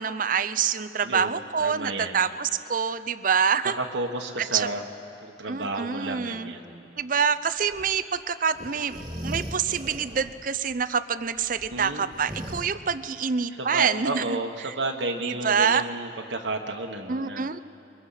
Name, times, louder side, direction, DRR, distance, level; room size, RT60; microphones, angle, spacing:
voice 1, 0.0-3.8 4.4-4.7 5.5-6.5 7.0-9.0 9.2-14.4 14.6-14.7 15.2-15.8 17.1-17.6, right 6 dB, 45° right, 13 dB, 0.5 m, -26 dB
voice 2, 1.0-2.2 3.6-4.9 5.2-7.0 11.7-12.1 13.5-17.5, right 2 dB, 70° right, 3 dB, 1.2 m, -32 dB
sound 1, 7.6-8.0 8.5-10.4 10.7-10.8 11.3-12.7, equal, 20° right, 1.9 m, -38 dB
23.5 x 21.5 x 5.7 m, 2.6 s
head